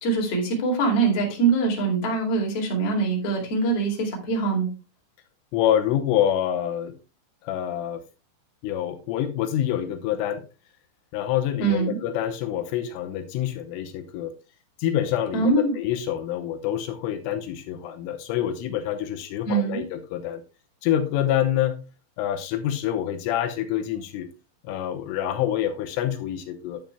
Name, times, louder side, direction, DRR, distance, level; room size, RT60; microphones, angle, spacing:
voice 1, 0.0-4.7 11.6-12.0 15.3-15.7 19.4-19.8, right 4 dB, 40° left, -1 dB, 2.6 m, -23 dB
voice 2, 5.5-6.9 7.4-8.0 8.6-10.4 11.1-14.3 14.8-20.4 20.8-21.8 22.2-24.3 24.6-26.8, left 11 dB, 85° left, 6 dB, 3.2 m, -26 dB
10.0 x 9.4 x 2.2 m, 0.31 s
omnidirectional pair, 5.8 m